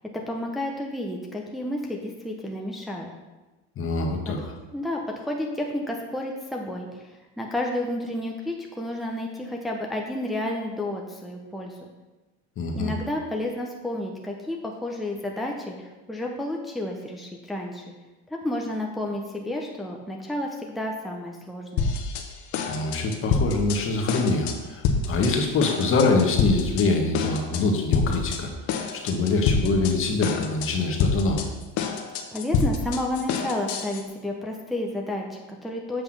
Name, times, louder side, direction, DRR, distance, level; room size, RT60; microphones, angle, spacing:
voice 1, 0.1-3.1 4.3-11.9 12.7-17.9 18.3-21.9 32.3-36.0, left 1 dB, ahead, -1 dB, 0.8 m, -31 dB
voice 2, 3.8-4.4 12.6-12.9 22.7-28.5 29.0-31.5, left 3 dB, 40° left, 2 dB, 1.4 m, -24 dB
sound 1, 21.8-22.3 22.5-23.8 24.1-24.6 24.8-25.3 25.6-26.9 27.1-27.6 27.9-28.4 28.7-29.9 30.2-30.7 31.0-34.0, left 5 dB, 65° left, 1.0 m, -26 dB
7.8 x 3.5 x 6.0 m, 1.1 s
supercardioid pair, 100°, 31 cm